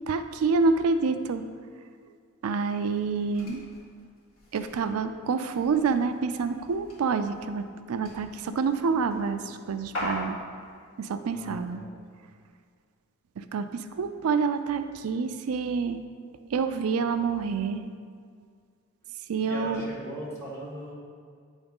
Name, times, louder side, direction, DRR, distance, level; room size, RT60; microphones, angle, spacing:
voice 1, 0.1-1.4 2.4-3.6 4.5-10.4 11.0-11.8 13.4-16.0 16.5-17.9 19.3-19.8, right 5 dB, 90° right, 9 dB, 0.4 m, -27 dB
opening and closing a loft door, 2.7-10.7, left 1 dB, 70° left, 1.9 m, -42 dB
voice 2, 11.3-12.1 19.4-20.9, right 1 dB, 10° left, -6 dB, 1.7 m, -39 dB
8.7 x 3.6 x 5.3 m, 2.1 s
head